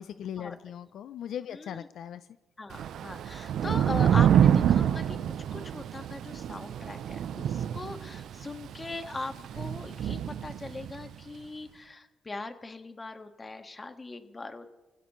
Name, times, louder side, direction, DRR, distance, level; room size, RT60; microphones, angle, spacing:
voice 1, 0.0-2.3, left 9 dB, 75° left, 13 dB, 0.4 m, -39 dB
voice 2, 1.5-1.9 2.6-5.2 5.5-14.7, left 3 dB, 25° left, 7 dB, 1.6 m, -40 dB
Thunder / Rain, 2.7-11.1, right 9 dB, 75° right, 0.5 m, -27 dB
28.0 x 16.0 x 3.1 m, 1.1 s
cardioid pair, 85°, 0 cm